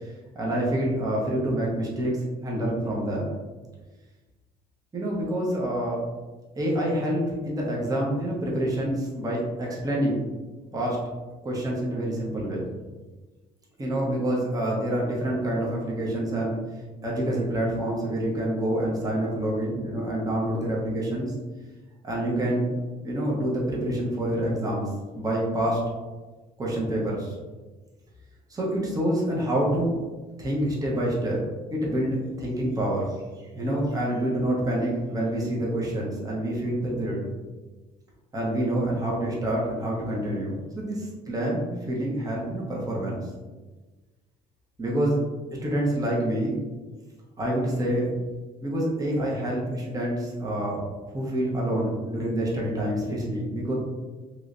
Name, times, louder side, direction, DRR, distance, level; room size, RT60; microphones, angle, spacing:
voice 1, 0.0-3.4 4.9-6.0 6.6-10.2 10.7-11.0 11.4-12.6 13.8-16.6 17.0-21.3 22.0-22.7 23.0-24.9 25.1-25.8 26.6-27.4 28.5-30.0 30.4-31.4 31.7-33.2 33.5-37.2 38.3-43.3 44.8-45.2 45.6-46.6 47.4-48.1 48.6-50.8 51.1-53.7, right 1 dB, 20° right, -4 dB, 0.8 m, -27 dB
3.1 x 3.0 x 2.5 m, 1.3 s
cardioid pair, 110°, 17 cm